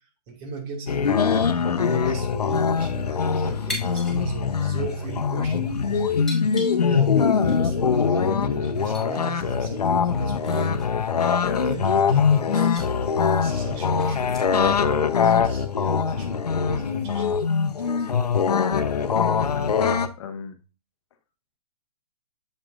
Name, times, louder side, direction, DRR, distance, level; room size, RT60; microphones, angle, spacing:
voice 1, 0.3-6.1 6.9-10.9 11.6-14.4 15.2-17.4 17.7-18.3, right 4 dB, 35° right, 2.2 m, -38 dB
sound 1, 0.9-20.1, left 6 dB, 90° left, 0.8 m, -22 dB
sound 2, 3.7-4.2 4.5-4.6 5.4-5.6 6.2-7.2 7.5-7.6 8.1-8.2 8.6-9.1 9.5-9.6 10.0-12.2 12.5-12.9 13.3-14.7, left 1 dB, ahead, 2.4 m, -40 dB
voice 2, 18.8-19.9 20.2-20.6, left 7 dB, 50° left, 0.9 m, -38 dB
7.6 x 7.4 x 2.5 m
hypercardioid pair, 135°, 20 cm